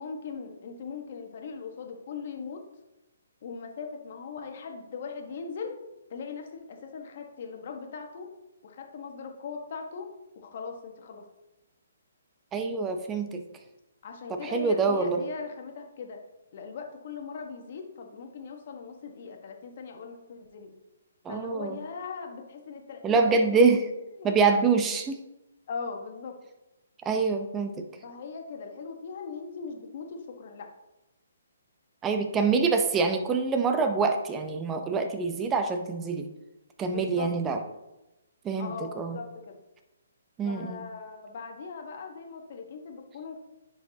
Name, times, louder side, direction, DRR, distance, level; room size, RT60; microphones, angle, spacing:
voice 1, 0.0-2.6 3.4-5.7 6.1-8.3 8.6-10.1 10.3-11.2 14.0-16.2 16.5-20.7 21.3-23.7 24.1-24.4 25.7-26.3 28.0-30.7 32.4-32.6 36.9-37.3 37.6-37.7 38.6-39.6 40.4-43.4, left 5 dB, 50° left, 4 dB, 1.2 m, -40 dB
voice 2, 12.5-13.4 14.3-15.2 21.2-21.8 23.0-23.8 24.2-25.2 27.0-27.8 32.0-36.3 36.8-37.6 38.4-39.2 40.4-40.8, right 4 dB, 15° right, 6 dB, 0.7 m, -25 dB
10.5 x 4.6 x 2.8 m, 0.96 s
hypercardioid pair, 150°, 0 cm